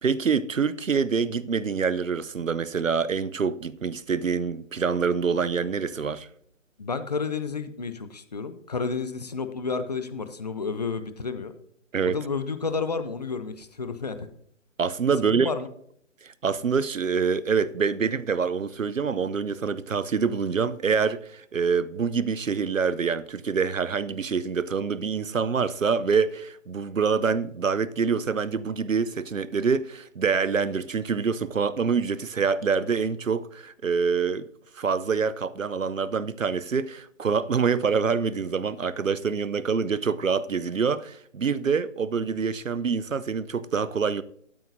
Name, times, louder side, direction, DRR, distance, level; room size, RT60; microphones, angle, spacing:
voice 1, 0.0-6.3 11.9-12.2 14.8-15.5 16.2-34.5 34.8-44.2, right 5 dB, 75° right, 0.8 m, -26 dB
voice 2, 6.8-11.5 12.1-14.3 15.2-15.7, left 4 dB, 30° left, 0.7 m, -31 dB
12.5 x 12.5 x 2.7 m
figure-of-eight pair, 150°, 39 cm